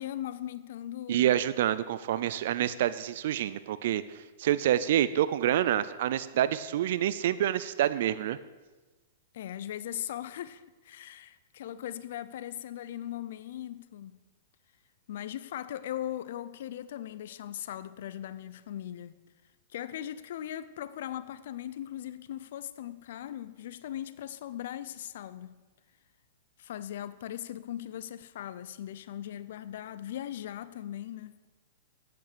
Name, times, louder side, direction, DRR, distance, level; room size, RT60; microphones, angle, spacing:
voice 1, 0.0-1.3 9.3-14.2 15.1-19.2 19.7-25.6 26.6-31.4, left 11 dB, 65° left, 0.6 m, -39 dB
voice 2, 1.1-8.4, right 11 dB, 60° right, 0.5 m, -27 dB
8.9 x 8.5 x 6.8 m
hypercardioid pair, 140°, 0 cm